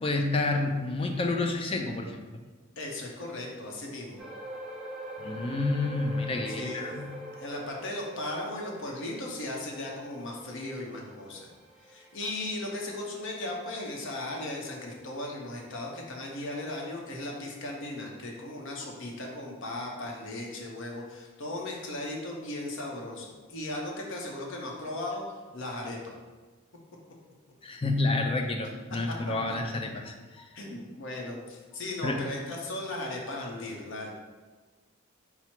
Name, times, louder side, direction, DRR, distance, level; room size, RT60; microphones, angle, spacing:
voice 1, 0.0-2.2 5.2-7.1 27.6-30.5 32.0-32.2, left 2 dB, 25° left, 4 dB, 0.4 m, -29 dB
voice 2, 2.8-4.2 6.5-11.5 11.9-26.2 28.9-29.0 29.5-29.6 30.5-34.1, left 1 dB, 60° left, 0 dB, 0.7 m, -37 dB
sound 1, 4.2-16.9 17.2-17.4 17.9-18.0, right 1 dB, 5° right, 0.7 m, -45 dB
5.6 x 2.0 x 4.4 m, 1.3 s
head